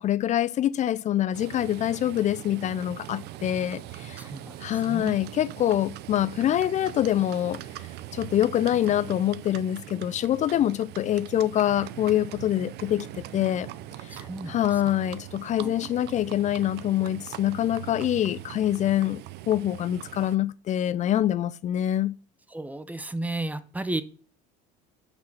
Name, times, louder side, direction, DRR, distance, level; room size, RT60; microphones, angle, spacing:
voice 1, 0.0-4.2 4.6-7.6 8.1-13.7 14.0-19.2 19.5-22.1, left 12 dB, 40° left, 0.4 m, -25 dB
Livestock farm animals working animals, 1.3-20.4, right 13 dB, 60° right, 0.6 m, -41 dB
voice 2, 4.2-5.2 14.1-14.8 15.6-15.9 22.5-24.0, right 2 dB, 10° right, 0.7 m, -34 dB
6.0 x 5.6 x 6.5 m
supercardioid pair, 110°, 20 cm